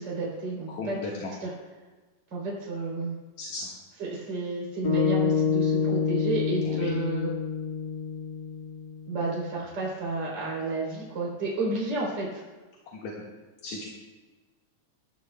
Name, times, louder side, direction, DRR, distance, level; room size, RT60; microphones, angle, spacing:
voice 1, 0.0-1.0 1.4-1.5 2.3-3.1 4.0-7.3 9.1-12.4, right 3 dB, 30° right, -4 dB, 3.8 m, -31 dB
voice 2, 0.7-1.3 3.4-3.7 6.6-6.9 12.9-13.1 13.6-13.8, left 3 dB, 60° left, -3 dB, 2.7 m, -35 dB
sound 1, 4.8-9.2, left 7 dB, 40° left, 1.7 m, -27 dB
23.5 x 12.5 x 2.2 m, 1.3 s
omnidirectional pair, 3.9 m